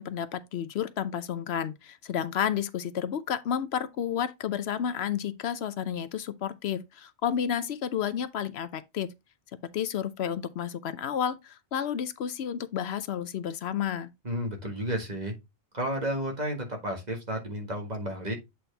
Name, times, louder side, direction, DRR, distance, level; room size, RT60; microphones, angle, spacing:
voice 1, 0.0-9.1 9.7-14.1, left 9 dB, 75° left, 0.9 m, -31 dB
voice 2, 14.2-15.3 15.7-18.4, equal, 40° right, 1.7 m, -32 dB
7.9 x 4.3 x 3.3 m
omnidirectional pair, 1.1 m